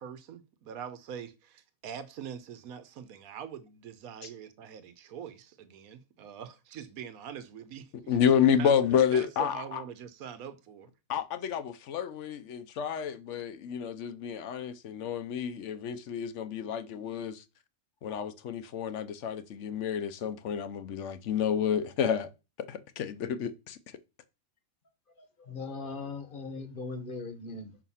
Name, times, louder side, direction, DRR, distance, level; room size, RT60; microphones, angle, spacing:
voice 1, 0.0-8.2 8.6-8.7 9.1-10.9, right 8 dB, 80° right, 1.3 m, -43 dB
voice 2, 8.1-9.8 11.1-17.4 18.0-22.3 22.7-23.8, left 8 dB, 65° left, 0.9 m, -29 dB
voice 3, 25.2-27.8, left 3 dB, 40° left, 1.1 m, -39 dB
6.0 x 4.9 x 5.5 m
omnidirectional pair, 1.5 m